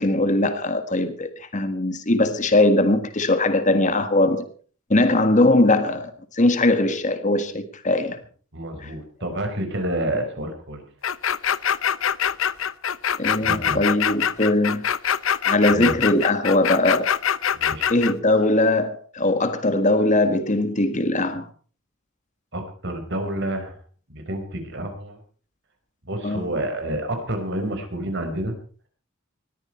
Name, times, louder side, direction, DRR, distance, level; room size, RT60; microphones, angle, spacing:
voice 1, 0.0-4.5 4.9-8.2 8.8-8.9 13.2-14.9 15.4-17.1 17.9-21.5 26.2-26.5, left 2 dB, 35° left, 1.6 m, -20 dB
voice 2, 8.5-10.8 13.4-13.8 15.7-15.9 17.5-17.9 22.5-23.7 24.1-25.2 26.0-28.5, right 1 dB, 55° right, 4.7 m, -29 dB
sound 1, 11.0-18.1, left 8 dB, 70° left, 0.7 m, -23 dB
20.0 x 14.0 x 4.4 m
head